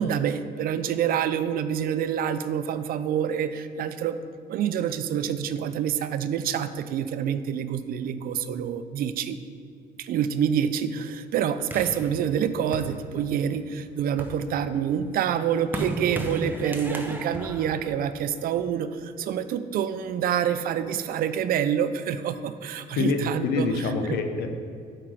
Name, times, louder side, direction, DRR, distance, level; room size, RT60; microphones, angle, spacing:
voice 1, 0.0-4.2 4.5-9.4 10.0-23.7, right 8 dB, 60° right, 12 dB, 0.4 m, -27 dB
sound 1, 11.7-13.5 14.0-18.6, right 1 dB, 10° right, 0.7 m, -36 dB
voice 2, 22.9-24.5, left 4 dB, 75° left, 6 dB, 0.8 m, -26 dB
7.6 x 4.5 x 4.8 m, 2.3 s
cardioid pair, 110°, 17 cm